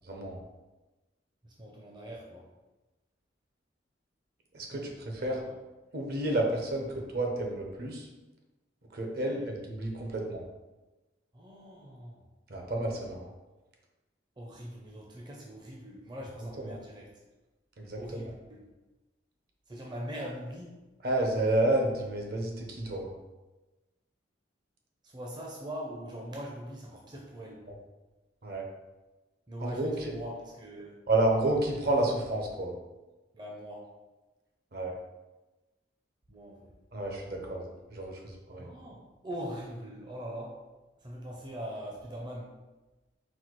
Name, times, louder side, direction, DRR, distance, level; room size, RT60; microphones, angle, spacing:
voice 1, 0.1-0.4 4.5-5.5 5.9-6.9 7.1-8.1 8.9-10.4 12.5-13.3 17.8-18.0 21.0-23.1 28.4-28.7 29.6-30.1 31.1-32.8 34.7-34.9 36.9-37.6 37.9-38.7, right 1 dB, 55° right, 1 dB, 0.7 m, -30 dB
voice 2, 1.4-2.5 4.7-5.6 9.2-9.5 11.3-12.2 14.4-17.2 17.9-18.6 19.7-20.8 25.0-27.6 29.5-31.0 33.3-33.9 36.3-36.7 37.3-37.6 38.6-40.6 41.0-42.5, equal, 25° right, -2 dB, 0.5 m, -42 dB
4.2 x 2.3 x 4.4 m, 1.1 s
head